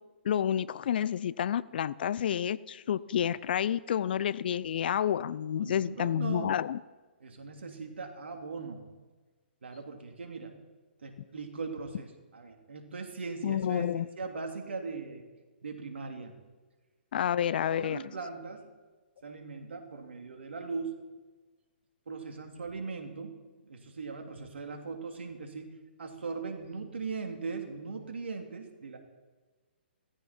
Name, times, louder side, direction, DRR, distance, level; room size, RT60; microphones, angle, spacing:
voice 1, 0.2-6.8 13.4-14.1 17.1-18.0, left 9 dB, 55° left, 20 dB, 0.5 m, -29 dB
voice 2, 5.5-6.6 7.2-8.9 9.6-10.6 11.0-13.9 14.2-15.3 15.6-16.4 17.7-18.7 19.2-21.0 22.1-23.3 23.6-29.0, right 4 dB, 80° right, 4 dB, 2.9 m, -39 dB
17.5 x 14.5 x 4.4 m, 1.3 s
hypercardioid pair, 135°, 6 cm